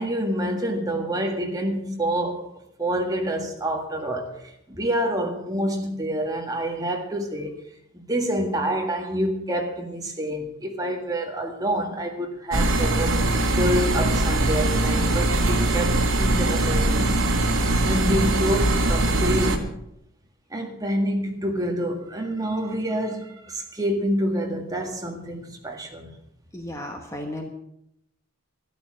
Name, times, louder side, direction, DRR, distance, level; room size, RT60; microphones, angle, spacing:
voice 1, 0.0-2.5 2.8-7.6 7.9-19.7 20.5-26.2, equal, 15° right, 1.8 m, -27 dB
sound 1, 12.5-19.6, right 2 dB, 65° right, 1.8 m, -21 dB
voice 2, 26.5-27.5, left 1 dB, 15° left, 1.1 m, -34 dB
13.0 x 11.5 x 6.3 m
head